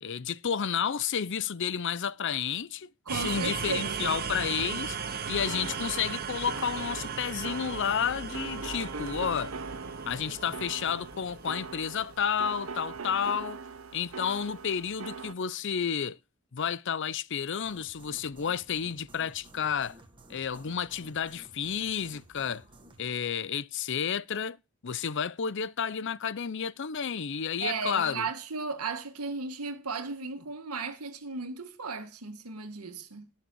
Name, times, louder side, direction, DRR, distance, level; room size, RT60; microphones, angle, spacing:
voice 1, 0.0-5.0 5.3-9.5 10.1-13.6 13.9-16.2 16.5-20.0 20.3-22.6 23.0-24.6 24.8-28.3, left 7 dB, 55° left, 0.5 m, -31 dB
sound 1, 3.1-12.8, right 6 dB, 40° right, 1.0 m, -37 dB
voice 2, 3.1-4.2 27.6-33.3, right 4 dB, 80° right, 1.9 m, -35 dB
sound 2, 5.0-15.4, right 4 dB, 65° right, 0.8 m, -42 dB
sound 3, 17.6-23.1, right 1 dB, 20° right, 1.7 m, -54 dB
18.0 x 6.5 x 4.5 m
head